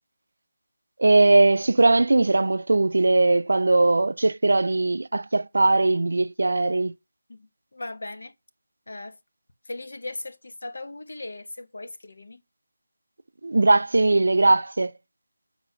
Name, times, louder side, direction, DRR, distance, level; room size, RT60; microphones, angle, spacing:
voice 1, 1.0-6.9 13.4-14.9, right 2 dB, 60° right, 0.4 m, -20 dB
voice 2, 7.3-8.3 8.9-9.2 9.6-12.4, left 2 dB, 60° left, 1.1 m, -38 dB
7.7 x 4.3 x 5.5 m
figure-of-eight pair, 180°, 0 cm